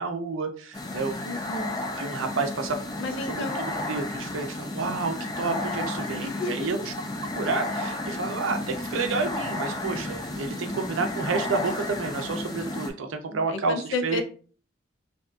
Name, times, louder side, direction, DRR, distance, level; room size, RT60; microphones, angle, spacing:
voice 1, 0.0-1.2 2.0-2.9 3.3-3.4 3.9-6.9 7.3-14.2, right 4 dB, 85° right, 6 dB, 0.5 m, -30 dB
sound 1, 0.7-12.9, left 2 dB, 20° left, 0.3 m, -32 dB
voice 2, 1.2-1.8 3.0-3.6 6.2-6.6 13.3-14.2, left 2 dB, 80° left, 7 dB, 0.4 m, -32 dB
2.7 x 2.2 x 2.4 m, 0.41 s
head